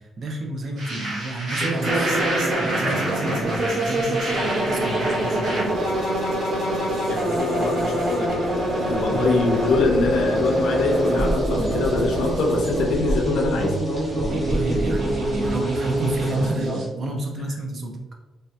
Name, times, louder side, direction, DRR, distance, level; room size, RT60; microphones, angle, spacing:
voice 1, 0.0-2.1 2.6-5.9 8.8-9.7 14.2-18.0, right 2 dB, 40° right, 2 dB, 0.4 m, -30 dB
sound 1, 0.8-5.6, right 1 dB, 90° right, 1.4 m, -29 dB
sound 2, 1.6-16.9, right 1 dB, 65° right, 0.9 m, -25 dB
voice 2, 7.1-8.6 8.9-13.9, left 3 dB, 80° left, 2 dB, 0.5 m, -24 dB
sound 3, 7.2-16.5, right 1 dB, 5° right, 0.9 m, -32 dB
3.1 x 2.7 x 2.2 m, 1.1 s
cardioid pair, 160°, 0 cm